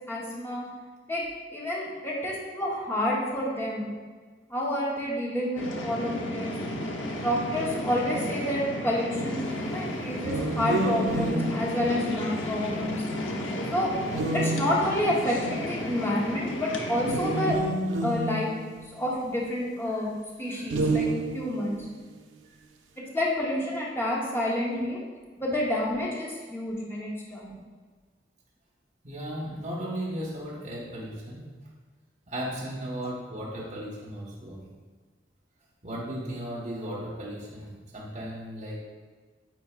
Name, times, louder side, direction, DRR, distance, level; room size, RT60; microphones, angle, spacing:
voice 1, 0.1-0.7 1.1-1.2 1.5-3.8 4.5-6.5 7.2-13.0 13.7-13.9 14.3-17.6 18.0-18.6 18.9-20.1 20.4-21.8 23.0-25.0 25.4-27.5, left 1 dB, 15° left, -4 dB, 1.0 m, -29 dB
sound 1, 5.6-17.5, left 1 dB, 90° left, 0.8 m, -33 dB
sound 2, 10.2-12.5 14.1-15.3 17.0-19.3 20.6-21.7, right 2 dB, 85° right, 0.6 m, -29 dB
voice 2, 29.0-31.5 32.3-34.6 35.8-38.8, equal, 40° right, -6 dB, 1.3 m, -36 dB
9.3 x 4.2 x 2.4 m, 1.4 s
head